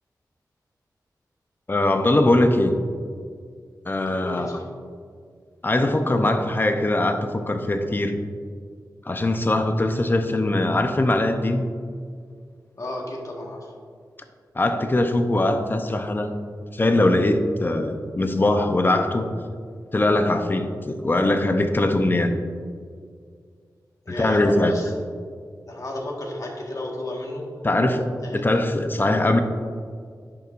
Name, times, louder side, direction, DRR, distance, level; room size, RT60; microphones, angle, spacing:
voice 1, 1.7-2.8 3.9-4.5 5.6-8.2 9.1-11.7 14.5-16.3 16.7-19.3 19.9-22.3 24.2-24.7 27.6-29.4, left 1 dB, 30° left, 7 dB, 0.7 m, -21 dB
voice 2, 4.2-4.6 12.8-13.7 24.0-24.9 25.6-27.4 28.2-28.4, left 1 dB, 50° left, -1 dB, 1.6 m, -32 dB
10.5 x 6.8 x 2.6 m, 2.1 s
wide cardioid pair, 80°, 7 cm